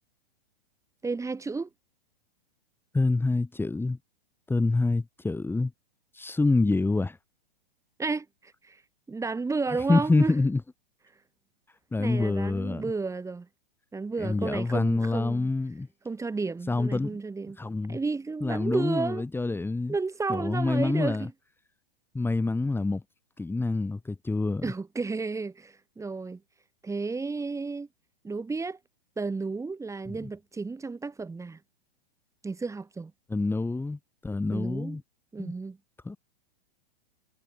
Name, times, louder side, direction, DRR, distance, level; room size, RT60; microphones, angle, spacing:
voice 1, 1.0-1.7 8.0-8.8 9.1-10.3 12.0-13.5 13.9-15.5 16.0-17.6 17.9-19.3 19.9-21.3 24.6-26.4 26.8-27.9 28.2-28.8 29.2-31.6 32.4-33.1 34.5-35.0 35.3-35.8, right 4 dB, 10° right, 7.8 m, -32 dB
voice 2, 2.9-4.0 4.5-5.7 6.1-7.2 9.9-10.6 11.9-12.8 14.2-15.9 16.7-17.2 17.6-18.0 18.4-19.9 20.3-21.3 22.1-23.0 23.4-24.7 30.1-30.2 33.3-35.0 35.4-35.5 36.1-36.2, left 3 dB, 5° left, 7.5 m, -26 dB
hypercardioid pair, 115°, 29 cm